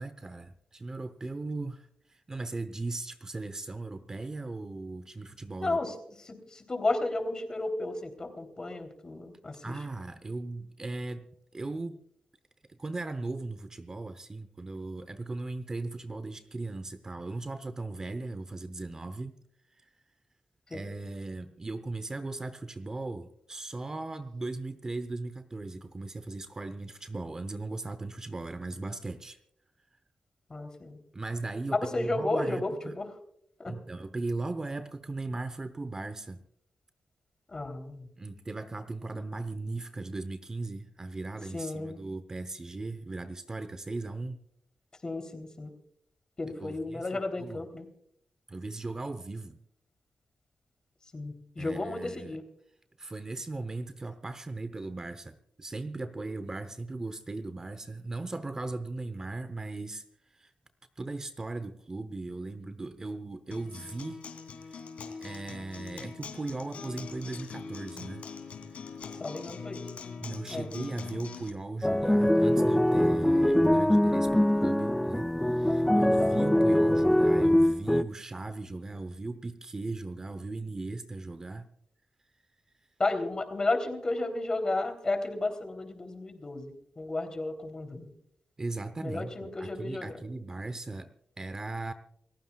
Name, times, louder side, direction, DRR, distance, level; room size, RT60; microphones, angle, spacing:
voice 1, 0.0-5.8 9.6-11.2 11.5-12.0 12.7-19.4 19.7-19.8 20.7-29.4 31.1-32.9 33.7-36.4 38.2-44.4 46.6-47.6 48.5-49.6 51.6-52.4 53.0-60.0 60.3-60.5 61.0-64.3 64.6-64.9 65.2-68.3 68.7-69.0 70.2-81.7 88.6-91.9, right 2 dB, 25° right, 11 dB, 0.9 m, -38 dB
voice 2, 5.6-5.9 6.3-9.7 20.7-20.9 30.5-31.0 31.7-33.1 33.6-33.7 37.5-38.1 41.5-42.0 45.0-45.7 46.4-47.9 51.1-52.4 69.2-69.8 70.5-70.7 83.0-88.1 89.0-90.2, left 2 dB, 35° left, 5 dB, 3.4 m, -33 dB
Acoustic guitar, 63.5-71.5, left 5 dB, 90° left, 3.0 m, -43 dB
sound 1, 71.8-78.0, left 1 dB, 5° left, 0.4 m, -23 dB
29.5 x 15.5 x 2.4 m, 0.71 s
wide cardioid pair, 105°, 2 cm